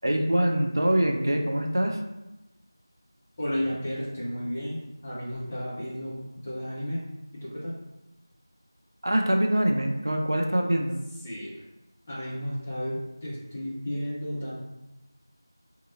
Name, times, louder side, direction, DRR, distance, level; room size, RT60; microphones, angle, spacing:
voice 1, 0.0-2.0 9.0-11.0, right 1 dB, 55° right, 2 dB, 0.5 m, -24 dB
voice 2, 3.4-7.0 7.3-7.7 11.2-11.5 12.1-14.5, equal, 15° left, -9 dB, 0.5 m, -33 dB
3.1 x 2.8 x 3.7 m, 0.99 s
figure-of-eight pair, 170°, 2 cm